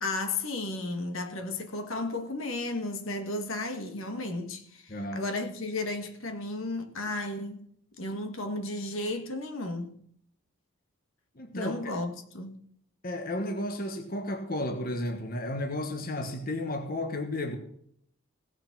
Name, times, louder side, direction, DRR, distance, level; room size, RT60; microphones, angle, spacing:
voice 1, 0.0-7.6 8.0-9.9 11.5-12.6, left 2 dB, 75° left, 1.7 m, -34 dB
voice 2, 4.9-5.3 11.4-11.9 13.0-17.6, left 1 dB, 45° left, 1.3 m, -33 dB
17.0 x 6.6 x 6.0 m
head